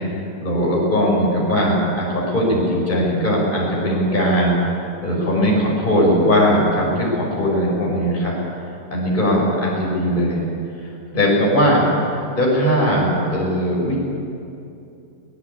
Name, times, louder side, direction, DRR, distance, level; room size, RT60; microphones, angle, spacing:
voice 1, 0.4-4.5 5.0-8.3 8.9-10.4 10.8-14.0, equal, 25° left, -4 dB, 5.7 m, -19 dB
22.5 x 20.0 x 8.5 m, 2.7 s
omnidirectional pair, 1.9 m